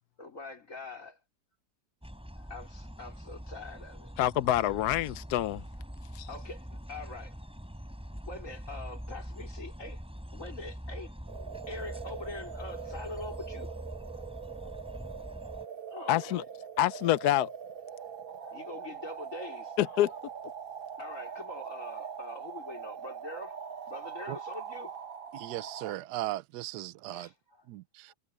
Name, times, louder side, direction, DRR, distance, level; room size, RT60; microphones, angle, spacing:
voice 1, 0.2-1.2 2.4-4.1 6.3-7.4 8.3-10.0 10.3-11.1 11.7-13.7 14.1-14.3 14.6-14.7 15.4-15.6 15.9-16.4 18.0-18.1 18.4-19.8 21.0-25.0 27.1-27.7 28.1-28.2, left 2 dB, 45° left, 4.6 m, -44 dB
sound 1, 2.0-15.6, equal, 5° right, 4.1 m, -43 dB
voice 2, 4.2-5.6 6.1-6.3 16.1-16.4 16.8-17.5 19.8-20.1, left 13 dB, 70° left, 1.1 m, -26 dB
sound 2, 11.3-25.9, right 7 dB, 55° right, 0.6 m, -42 dB
voice 3, 25.3-27.3 27.7-28.1, right 15 dB, 75° right, 1.2 m, -37 dB
omnidirectional pair, 1.9 m